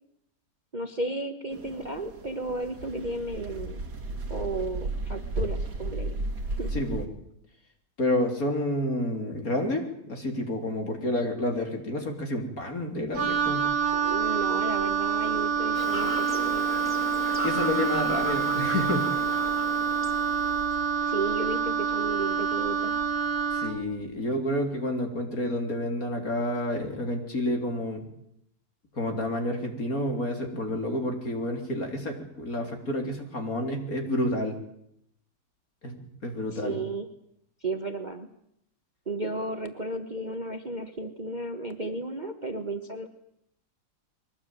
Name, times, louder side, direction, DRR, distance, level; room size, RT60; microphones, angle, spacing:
voice 1, 0.7-3.8 4.3-6.2 6.5-6.7 13.9-16.7 21.0-22.9 36.5-37.1 37.6-38.3 39.1-43.1, right 2 dB, 25° right, 7 dB, 1.3 m, -33 dB
sound 1, 1.5-7.1, right 2 dB, 55° right, 3.5 m, -34 dB
voice 2, 6.7-7.0 8.0-13.7 17.4-19.1 23.5-28.1 28.9-34.6 35.8-36.8, left 1 dB, 45° left, 3 dB, 4.0 m, -29 dB
Wind instrument woodwind instrument, 13.1-23.8, right 7 dB, 75° right, 4.0 m, -27 dB
Fowl / Bird vocalization bird call bird song, 15.7-20.7, equal, 5° left, 2.7 m, -36 dB
22.5 x 19.0 x 9.2 m, 0.75 s
omnidirectional pair, 2.1 m